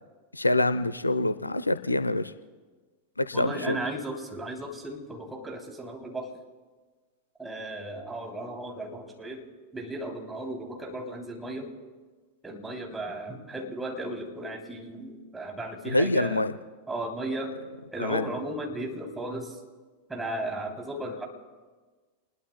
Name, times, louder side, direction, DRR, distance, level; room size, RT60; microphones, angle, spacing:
voice 1, 0.3-2.3 3.2-3.8 15.9-16.6 18.0-18.3, left 2 dB, 80° left, 13 dB, 0.6 m, -26 dB
voice 2, 3.3-6.3 7.4-9.5 9.7-11.7 12.4-16.5 16.9-17.6 17.9-19.6 20.1-21.2, right 1 dB, 10° right, 0 dB, 3.1 m, -35 dB
29.5 x 21.0 x 2.2 m, 1.4 s
figure-of-eight pair, 90°, 0 cm